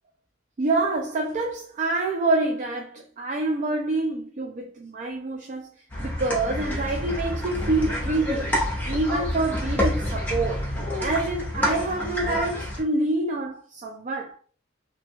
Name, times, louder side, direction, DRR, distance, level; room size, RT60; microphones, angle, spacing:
voice 1, 0.6-5.7 6.0-10.7 11.0-14.4, right 2 dB, 40° right, 0.4 m, -27 dB
sound 1, 5.9-12.8, left 1 dB, 10° left, 0.8 m, -28 dB
2.7 x 2.4 x 2.7 m
head